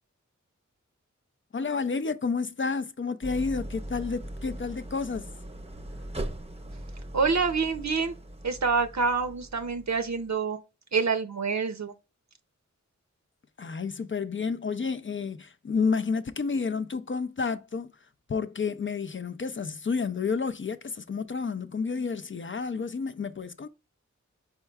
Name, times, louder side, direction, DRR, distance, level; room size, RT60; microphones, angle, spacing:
voice 1, 1.5-5.3 13.6-17.9 18.3-23.7, left 5 dB, 45° left, 0.4 m, -30 dB
Idling, 3.2-10.3, right 1 dB, 20° right, 0.7 m, -40 dB
voice 2, 7.1-8.1 8.4-10.6 10.9-11.9, right 5 dB, 65° right, 0.6 m, -27 dB
4.5 x 4.4 x 2.3 m
wide cardioid pair, 45°, 30 cm